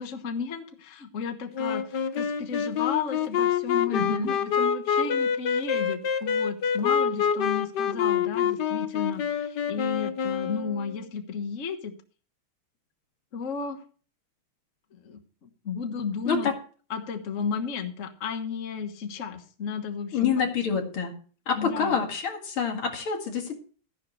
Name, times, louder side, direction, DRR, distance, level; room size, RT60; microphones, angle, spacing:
voice 1, 0.0-11.9 13.3-13.8 14.9-16.5 16.9-20.3 21.5-22.0, left 6 dB, 40° left, 7 dB, 1.4 m, -33 dB
Wind instrument woodwind instrument, 1.5-11.0, left 7 dB, 60° left, 1.4 m, -26 dB
voice 2, 3.9-4.3 16.3-16.5 20.1-21.1 21.5-23.6, left 6 dB, 80° left, 3 dB, 3.0 m, -27 dB
13.5 x 11.0 x 3.2 m, 0.40 s
omnidirectional pair, 2.3 m